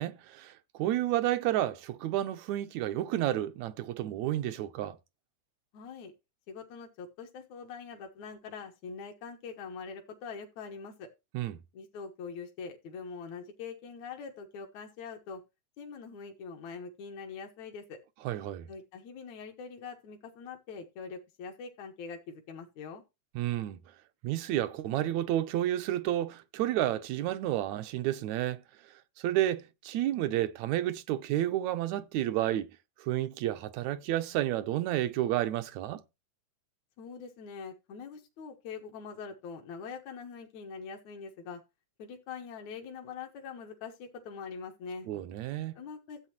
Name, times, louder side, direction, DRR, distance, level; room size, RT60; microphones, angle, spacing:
voice 1, 0.0-5.0 11.3-11.6 18.3-18.7 23.4-23.8 24.2-28.6 29.2-32.7 33.0-36.0 45.1-45.8, right 13 dB, 80° right, 2.0 m, -31 dB
voice 2, 5.7-6.1 6.5-11.1 11.7-15.4 15.8-18.0 18.7-23.0 37.0-41.6 42.0-45.1 45.8-46.2, left 5 dB, 70° left, 2.7 m, -43 dB
14.0 x 8.2 x 3.0 m
omnidirectional pair, 3.4 m